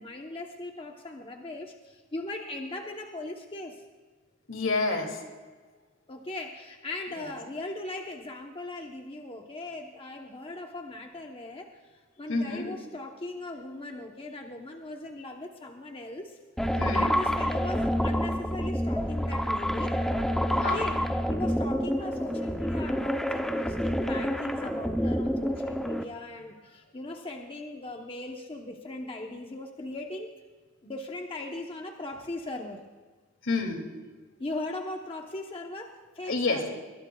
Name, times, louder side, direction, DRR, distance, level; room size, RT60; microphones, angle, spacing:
voice 1, 0.0-3.8 6.1-16.4 16.7-20.0 20.5-21.0 21.3-30.3 30.8-32.8 34.4-36.8, left 2 dB, 30° left, 2 dB, 0.9 m, -39 dB
voice 2, 4.5-5.2 7.1-7.2 12.3-12.7 16.8-17.1 20.6-20.8 33.4-33.8 36.3-36.6, left 3 dB, 70° left, 3 dB, 2.6 m, -28 dB
sound 1, 16.6-26.0, equal, ahead, 0.7 m, -28 dB
21.0 x 20.5 x 2.3 m, 1.4 s
head